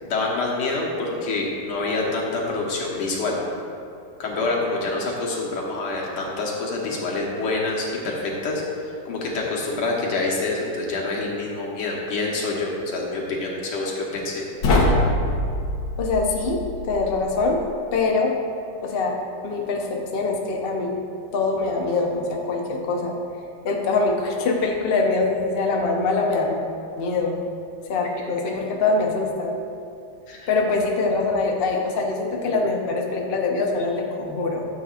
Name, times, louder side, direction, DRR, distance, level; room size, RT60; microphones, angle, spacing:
voice 1, 0.0-3.4 4.2-8.6 9.1-14.4 30.3-30.5, left 3 dB, 90° left, -3 dB, 2.2 m, -26 dB
sound 1, 14.6-17.7, left 1 dB, 70° left, 1.9 m, -24 dB
voice 2, 16.0-17.6 17.9-18.4 18.8-19.2 19.4-21.0 21.3-23.2 23.6-26.6 27.0-27.4 27.9-29.6 30.5-34.7, left 3 dB, 55° left, 0 dB, 0.6 m, -23 dB
12.5 x 7.6 x 2.5 m, 2.5 s
omnidirectional pair, 2.3 m